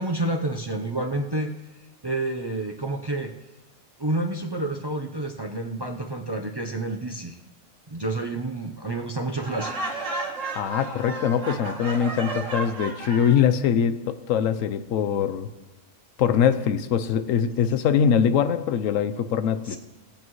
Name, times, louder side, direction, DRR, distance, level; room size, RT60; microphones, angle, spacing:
voice 1, 0.0-1.5 2.0-3.3 4.0-7.4 7.9-9.7 19.6-19.8, right 2 dB, 35° right, 3 dB, 0.4 m, -29 dB
Laughter, 9.4-13.5, right 3 dB, 70° right, 1.7 m, -33 dB
voice 2, 10.5-15.5 16.2-19.8, left 8 dB, 75° left, 11 dB, 1.0 m, -23 dB
19.5 x 8.6 x 3.1 m, 1.2 s
omnidirectional pair, 1.4 m